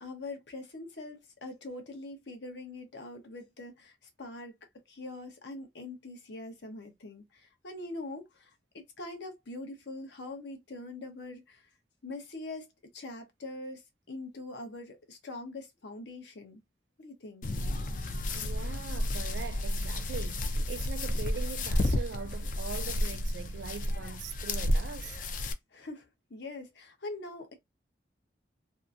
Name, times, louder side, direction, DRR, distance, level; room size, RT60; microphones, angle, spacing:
voice 1, 0.0-4.5 4.9-11.7 12.0-16.6 17.0-17.5 25.7-27.5, left 2 dB, 75° left, 0.9 m, -43 dB
sound 1, 17.4-25.5, left 1 dB, 45° left, 0.4 m, -31 dB
voice 2, 18.3-25.2, right 6 dB, 75° right, 0.3 m, -42 dB
2.7 x 2.5 x 2.4 m
head